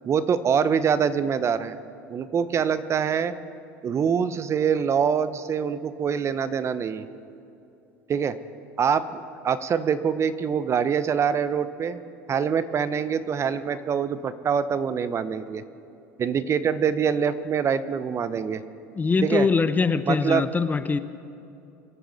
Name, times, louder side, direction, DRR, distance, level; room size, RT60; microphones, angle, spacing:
voice 1, 0.0-1.8 2.1-3.3 3.8-7.0 8.1-8.4 8.8-12.0 12.3-15.6 16.2-18.6 19.2-19.5 20.1-20.5, right 7 dB, 35° right, 14 dB, 0.7 m, -24 dB
voice 2, 18.9-21.0, left 4 dB, 20° left, 12 dB, 0.6 m, -22 dB
24.5 x 8.7 x 4.0 m, 2.7 s
hypercardioid pair, 90°, 8 cm